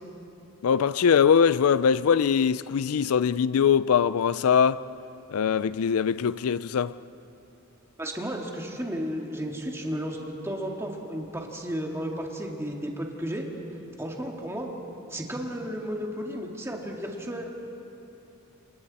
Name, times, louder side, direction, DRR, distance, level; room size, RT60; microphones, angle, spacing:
voice 1, 0.6-4.8 5.3-6.9, left 7 dB, 80° left, 0.4 m, -22 dB
voice 2, 8.0-13.4 14.0-14.7 15.1-17.5, equal, 10° right, 2.2 m, -33 dB
29.0 x 28.0 x 4.2 m
head